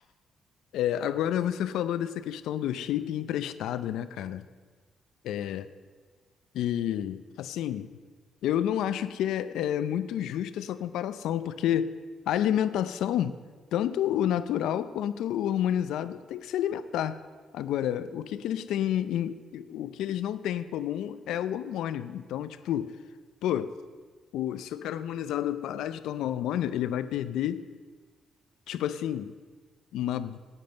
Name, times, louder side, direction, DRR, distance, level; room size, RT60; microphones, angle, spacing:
voice 1, 0.7-4.5 5.2-5.7 6.5-7.9 8.4-11.9 12.3-13.4 13.7-17.2 17.5-22.9 23.4-23.7 24.3-27.7 28.7-29.3 29.9-30.4, left 11 dB, 85° left, 13 dB, 0.5 m, -29 dB
9.5 x 9.1 x 6.6 m, 1.4 s
cardioid pair, 90°, 0 cm